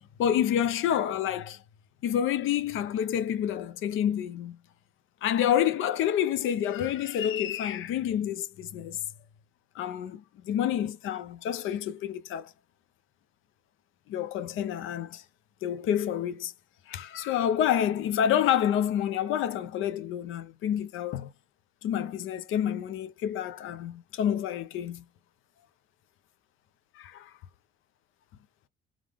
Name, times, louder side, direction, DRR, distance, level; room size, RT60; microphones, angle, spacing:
voice 1, 0.2-1.6 2.0-4.6 5.2-9.0 9.8-12.5 14.1-15.2 15.6-16.5 16.9-21.3 21.8-25.0 27.0-27.3, left 10 dB, 85° left, 0.6 m, -28 dB
3.6 x 3.5 x 3.4 m
cardioid pair, 90°, 20 cm